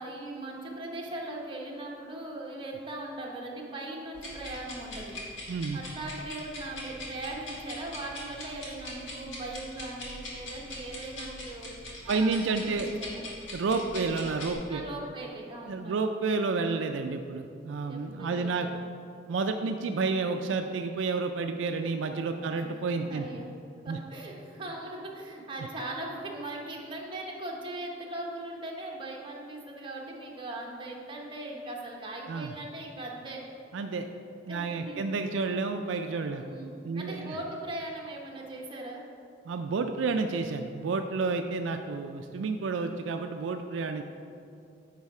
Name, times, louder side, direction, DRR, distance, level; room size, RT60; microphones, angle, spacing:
voice 1, 0.0-5.2 5.7-11.7 12.0-13.1 13.8-14.0 14.7-16.2 17.9-18.8 22.3-22.7 23.0-23.5 23.8-33.4 34.5-35.0 36.3-39.0, right 2 dB, 25° right, -2 dB, 1.1 m, -39 dB
sound 1, 4.1-14.5, left 1 dB, 85° left, 1.8 m, -42 dB
voice 2, 5.5-5.8 12.1-12.9 13.5-14.8 15.7-18.7 19.3-23.3 23.9-24.0 32.3-32.5 33.7-34.1 34.5-36.4 36.8-37.4 39.5-44.0, right 4 dB, 75° right, 6 dB, 0.4 m, -30 dB
9.7 x 4.0 x 4.8 m, 2.5 s
head